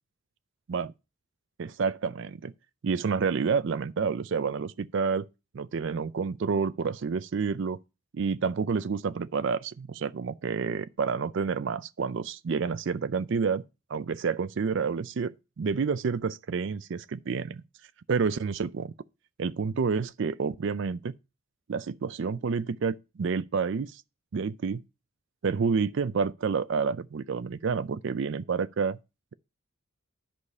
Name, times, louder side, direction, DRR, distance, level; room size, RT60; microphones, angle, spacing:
voice 1, 1.6-2.5 2.8-5.3 5.5-7.8 8.1-13.6 13.9-17.6 18.1-18.9 19.4-21.1 21.7-24.0 24.3-24.8 25.4-29.0, right 5 dB, 55° right, 0.4 m, -29 dB
11.0 x 4.9 x 5.3 m
head